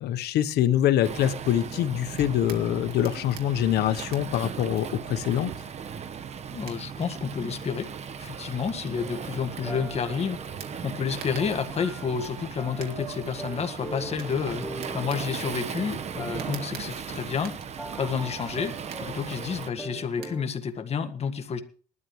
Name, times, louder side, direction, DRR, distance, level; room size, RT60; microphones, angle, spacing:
voice 1, 0.0-5.5, left 11 dB, 75° left, 12 dB, 1.0 m, -24 dB
Waves surf, 1.0-19.7, right 7 dB, 40° right, 1.0 m, -37 dB
sound 1, 2.0-20.8, right 8 dB, 70° right, 2.1 m, -51 dB
voice 2, 6.5-7.9 8.2-10.4 10.8-14.6 14.9-17.5 18.0-21.6, left 6 dB, 40° left, 7 dB, 1.7 m, -30 dB
sound 2, 8.9-20.4, right 1 dB, ahead, 0.8 m, -42 dB
19.5 x 12.5 x 3.2 m, 0.42 s
cardioid pair, 110°, 17 cm